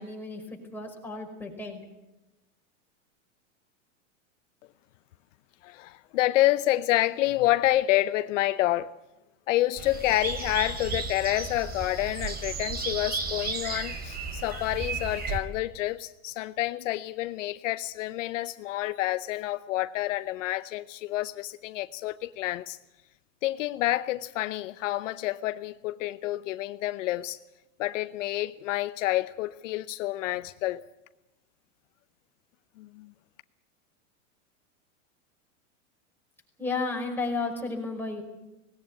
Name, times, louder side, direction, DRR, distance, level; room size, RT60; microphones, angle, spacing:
voice 1, 0.0-1.8 36.6-38.2, left 3 dB, 5° left, 5.1 m, -33 dB
voice 2, 5.6-8.9 9.5-22.8 23.4-27.4 27.8-30.8 32.8-33.1, left 16 dB, 70° left, 0.8 m, -28 dB
sound 1, 9.8-15.4, right 4 dB, 25° right, 3.1 m, -34 dB
19.0 x 17.5 x 9.5 m
supercardioid pair, 130°, 39 cm